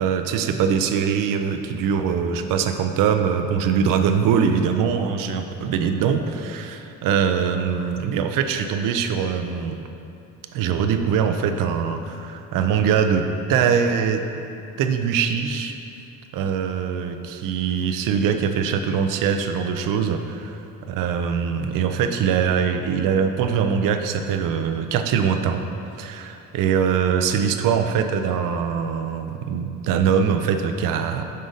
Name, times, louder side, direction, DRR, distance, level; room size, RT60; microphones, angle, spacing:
voice 1, 0.0-9.8 10.5-14.2 14.8-15.7 16.3-20.5 20.9-25.6 26.0-31.2, right 7 dB, 80° right, 7 dB, 0.5 m, -22 dB
6.5 x 3.8 x 3.9 m, 2.7 s
cardioid pair, 105°, 33 cm